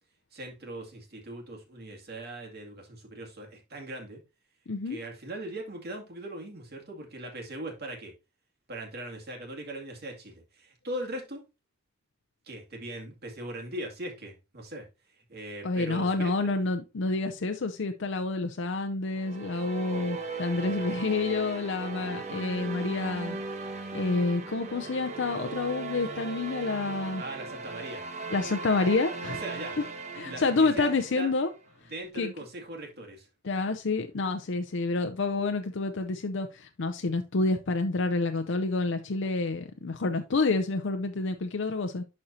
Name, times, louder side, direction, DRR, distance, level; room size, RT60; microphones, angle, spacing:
voice 1, 0.3-4.2 4.9-8.1 8.7-11.4 12.4-16.5 27.2-28.0 29.4-29.8 30.2-31.3 31.9-33.3, right 1 dB, 50° right, 2.2 m, -40 dB
voice 2, 4.7-5.0 15.6-23.4 23.9-27.2 28.3-29.4 29.8-29.9 30.2-31.5 32.2-32.3 33.4-42.0, left 3 dB, 60° left, 0.5 m, -28 dB
sound 1, 19.1-31.5, right 4 dB, 35° right, 1.0 m, -38 dB
11.5 x 4.3 x 2.7 m
head